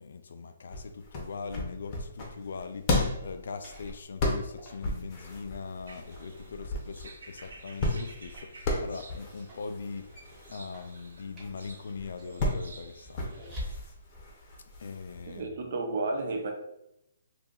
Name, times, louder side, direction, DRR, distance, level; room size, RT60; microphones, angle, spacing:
voice 1, 0.0-10.1 10.5-13.9 14.8-15.6, left 4 dB, 75° left, 0.3 m, -41 dB
sound 1, 0.7-15.4, left 2 dB, 35° left, 0.7 m, -35 dB
sound 2, 3.5-14.2, left 1 dB, 15° right, 1.1 m, -49 dB
sound 3, 5.9-13.8, right 2 dB, 90° right, 0.9 m, -52 dB
voice 2, 15.3-16.5, right 3 dB, 55° right, 0.8 m, -32 dB
2.6 x 2.4 x 3.9 m
hypercardioid pair, 150°, 0 cm